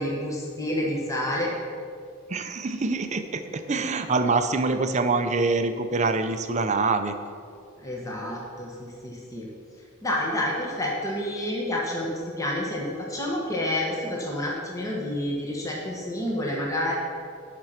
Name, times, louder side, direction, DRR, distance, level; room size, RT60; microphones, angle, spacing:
voice 1, 0.0-1.5 7.8-9.5 10.0-16.9, left 1 dB, 15° left, -3 dB, 1.3 m, -29 dB
voice 2, 2.3-7.1, right 3 dB, 35° right, 8 dB, 0.6 m, -25 dB
11.0 x 6.1 x 5.8 m, 2.2 s
head